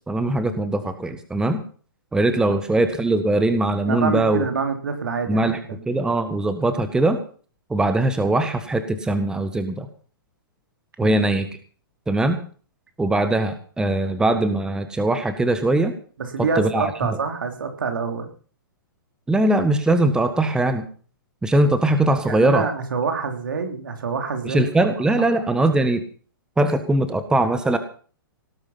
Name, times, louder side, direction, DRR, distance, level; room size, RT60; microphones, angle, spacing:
voice 1, 0.1-1.6 2.1-4.4 5.3-5.6 5.9-7.2 7.7-9.9 11.0-11.5 12.1-12.4 13.0-15.9 16.6-17.2 19.3-20.9 21.4-22.7 24.4-26.0 26.6-27.8, right 2 dB, 5° right, 10 dB, 1.5 m, -21 dB
voice 2, 3.9-5.8 11.0-11.2 16.2-18.3 22.2-24.7, right 5 dB, 65° right, 5 dB, 3.6 m, -26 dB
18.5 x 10.5 x 5.8 m, 0.42 s
figure-of-eight pair, 110°, 12 cm